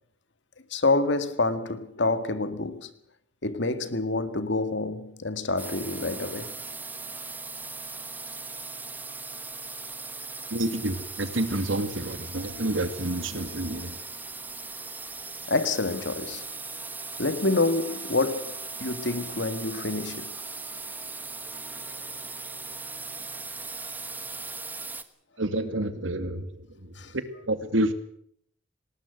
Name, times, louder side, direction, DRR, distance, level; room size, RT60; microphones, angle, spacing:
voice 1, 0.7-2.9 3.4-6.5 15.5-16.5 17.2-20.4 27.0-27.1, left 3 dB, 70° left, 1.9 m, -27 dB
sound 1, 5.6-25.0, right 3 dB, 10° right, 1.2 m, -38 dB
voice 2, 10.5-14.0 25.4-27.9, right 1 dB, 85° right, 2.3 m, -29 dB
19.5 x 19.0 x 7.9 m
head